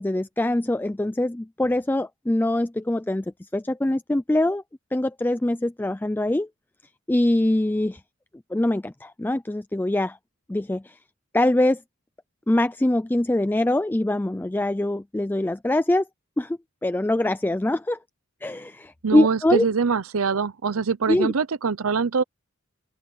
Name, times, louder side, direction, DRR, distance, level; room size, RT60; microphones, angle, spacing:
voice 1, 0.0-3.3 3.5-4.6 4.9-6.5 7.1-8.0 8.5-10.2 10.5-11.0 11.3-11.8 12.5-16.1 16.4-18.0 18.4-19.7 21.1-21.3, left 1 dB, 10° left, 0.3 m, -23 dB
voice 2, 19.0-22.2, right 5 dB, 80° right, 0.7 m, -23 dB
open air
head